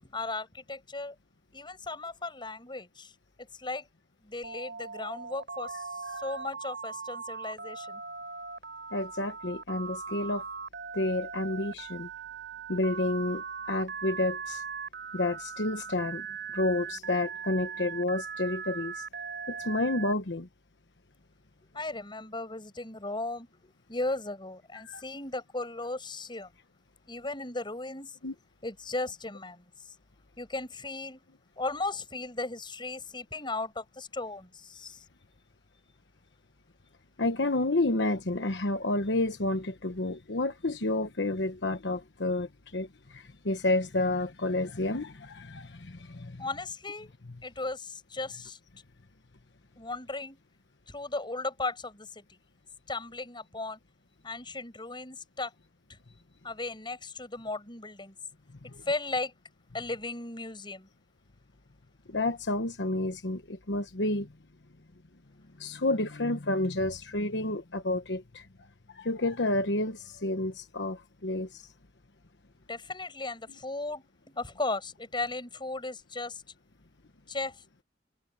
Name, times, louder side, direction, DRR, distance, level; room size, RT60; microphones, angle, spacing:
voice 1, 0.0-1.1 1.5-3.1 3.6-3.8 4.2-8.0 21.7-26.5 27.1-28.1 28.6-29.7 30.4-31.2 31.6-35.0 46.4-47.1 47.4-48.6 49.8-50.4 50.9-52.4 52.9-53.8 54.2-55.5 55.9-56.0 56.4-58.1 58.8-59.3 59.7-60.9 72.7-76.4 77.3-77.8, left 2 dB, 25° left, 6.8 m, -36 dB
Telephone, 4.4-20.1, right 5 dB, 65° right, 6.7 m, -39 dB
voice 2, 8.9-10.4 10.9-12.1 12.7-14.6 15.1-16.3 16.5-19.0 19.5-20.5 24.9-25.0 28.2-28.3 37.2-46.4 58.7-58.8 62.1-64.3 65.6-68.5 68.9-71.6, left 2 dB, 70° left, 1.2 m, -30 dB
head